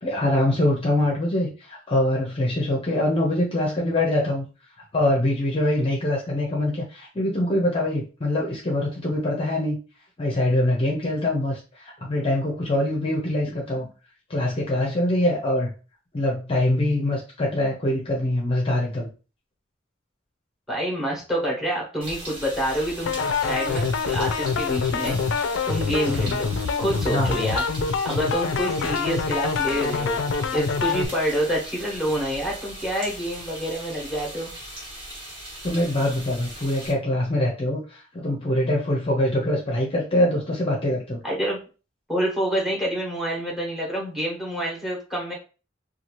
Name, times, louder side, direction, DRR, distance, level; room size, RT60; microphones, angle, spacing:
voice 1, 0.0-4.4 4.9-9.8 10.2-13.9 14.3-15.7 16.1-19.1 26.1-26.4 27.1-27.4 35.6-41.2, left 1 dB, 30° left, -1 dB, 0.6 m, -24 dB
voice 2, 13.5-13.9 20.7-23.1 23.4-25.2 25.6-26.5 26.8-27.6 28.0-30.2 30.5-34.5 41.2-41.6 42.1-45.3, equal, ahead, -2 dB, 1.1 m, -27 dB
sound 1, 22.0-36.9, right 1 dB, 30° right, 1.2 m, -39 dB
sound 2, 23.1-31.1, left 5 dB, 75° left, 0.4 m, -25 dB
2.7 x 2.4 x 3.0 m, 0.34 s
head